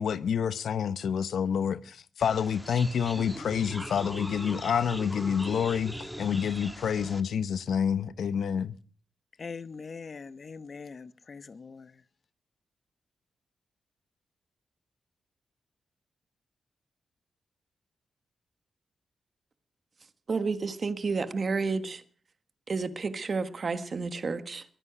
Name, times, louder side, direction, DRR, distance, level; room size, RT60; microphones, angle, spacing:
voice 1, 0.0-8.8, left 7 dB, 80° left, 0.7 m, -28 dB
sound 1, 2.2-7.2, equal, ahead, 1.5 m, -40 dB
voice 2, 9.4-12.0, left 5 dB, 50° left, 0.9 m, -42 dB
voice 3, 20.3-22.0 22.7-24.6, right 4 dB, 45° right, 1.3 m, -30 dB
22.5 x 9.9 x 6.1 m
cardioid pair, 90°, 0 cm